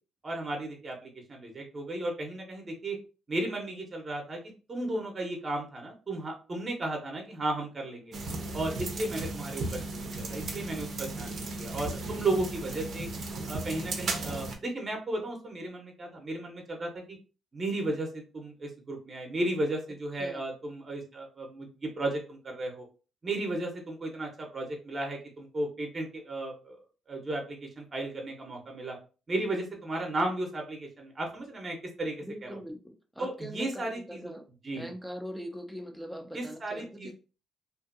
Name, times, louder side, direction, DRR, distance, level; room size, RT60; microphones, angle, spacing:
voice 1, 0.2-3.0 3.3-4.4 4.7-8.1 8.5-13.1 13.5-17.2 17.5-22.8 23.2-26.8 27.1-29.0 29.3-32.2 33.2-34.3 34.6-34.9 36.3-37.1, right 2 dB, 35° right, 2 dB, 0.9 m, -34 dB
sound 1, 8.1-14.5, right 2 dB, 60° right, 0.7 m, -35 dB
voice 2, 32.2-34.4 34.7-37.1, equal, ahead, 5 dB, 0.6 m, -41 dB
2.6 x 2.5 x 2.5 m, 0.34 s
cardioid pair, 90°, 0 cm